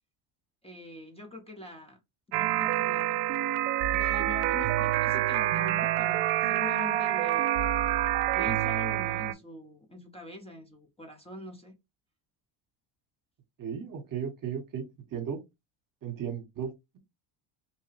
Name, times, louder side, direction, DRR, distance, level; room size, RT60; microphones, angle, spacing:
voice 1, 0.6-2.0 2.3-3.3 3.9-7.7 8.3-11.7, left 2 dB, 10° left, 0.7 m, -43 dB
sound 1, 2.3-9.3, right 13 dB, 85° right, 0.5 m, -27 dB
voice 2, 13.6-14.8 15.1-15.4 16.0-17.0, right 7 dB, 45° right, 1.0 m, -35 dB
2.8 x 2.2 x 3.2 m
supercardioid pair, 95°, 48 cm